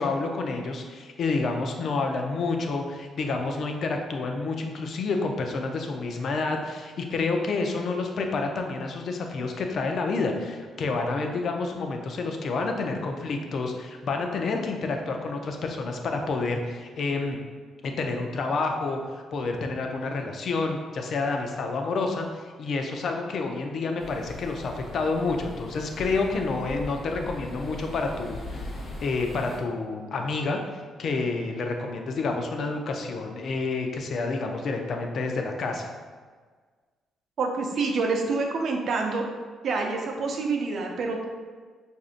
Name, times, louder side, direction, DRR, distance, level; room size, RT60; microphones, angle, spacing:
voice 1, 0.0-17.4 17.8-28.7 29.0-30.6 31.0-35.9, left 3 dB, 60° left, 3 dB, 0.5 m, -29 dB
sound 1, 24.0-29.6, left 1 dB, 40° left, 0.9 m, -40 dB
voice 2, 37.4-39.2 39.6-41.3, right 4 dB, 65° right, 2 dB, 0.6 m, -27 dB
4.8 x 2.6 x 2.5 m, 1.5 s
supercardioid pair, 60°, 0 cm